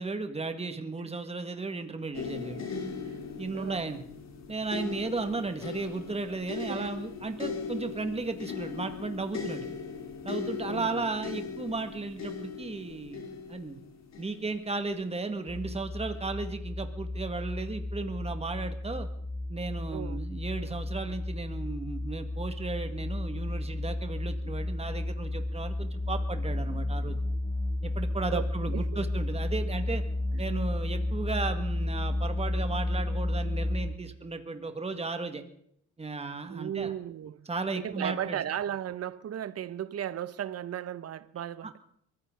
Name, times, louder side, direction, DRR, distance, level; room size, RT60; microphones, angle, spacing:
voice 1, 0.0-2.6 3.4-4.1 4.5-9.7 10.2-13.8 14.2-19.1 19.5-27.2 27.8-30.0 30.4-35.4 36.0-36.9 37.5-38.4 41.6-41.7, right 3 dB, 20° right, 1.9 m, -35 dB
sound 1, 2.1-15.2 16.0-16.2, left 5 dB, 60° left, 3.2 m, -39 dB
voice 2, 10.7-11.0 19.9-20.2 28.3-29.0 30.3-30.4 36.5-37.5 37.8-41.8, right 10 dB, 55° right, 0.9 m, -36 dB
sound 2, 15.5-33.9, left 1 dB, 5° right, 3.2 m, -32 dB
23.5 x 15.0 x 3.9 m
cardioid pair, 90°, 30 cm